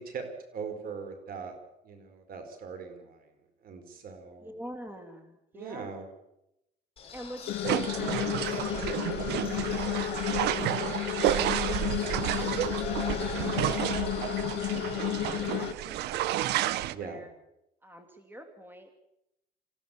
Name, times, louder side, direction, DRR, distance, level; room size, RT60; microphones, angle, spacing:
voice 1, 0.0-1.6 1.8-3.2 3.6-4.5 5.5-6.0 16.9-17.3, right 5 dB, 60° right, 7 dB, 4.7 m, -40 dB
voice 2, 4.4-6.1 7.1-10.2 10.5-11.1 11.6-14.0 14.3-17.3 17.8-18.9, equal, 10° right, 6 dB, 2.8 m, -46 dB
sound 1, 7.0-15.7, left 5 dB, 35° left, 6.1 m, -42 dB
sound 2, 7.5-15.7, left 14 dB, 75° left, 1.1 m, -32 dB
sound 3, 7.6-16.9, right 13 dB, 80° right, 0.8 m, -31 dB
27.0 x 16.0 x 7.0 m, 0.86 s
cardioid pair, 110°, 17 cm